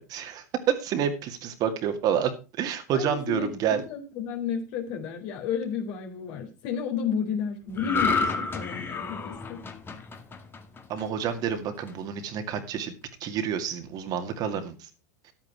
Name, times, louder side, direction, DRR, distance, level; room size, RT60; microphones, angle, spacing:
voice 1, 0.0-2.3 2.6-3.8 10.9-12.9 13.2-14.8, right 8 dB, 45° right, 7 dB, 2.2 m, -28 dB
voice 2, 2.9-9.6, left 7 dB, 55° left, 2 dB, 3.9 m, -32 dB
sound 1, 7.8-11.2 11.7-11.9, left 4 dB, 25° left, 2.0 m, -30 dB
12.0 x 8.7 x 4.7 m, 0.30 s
hypercardioid pair, 85°, 9 cm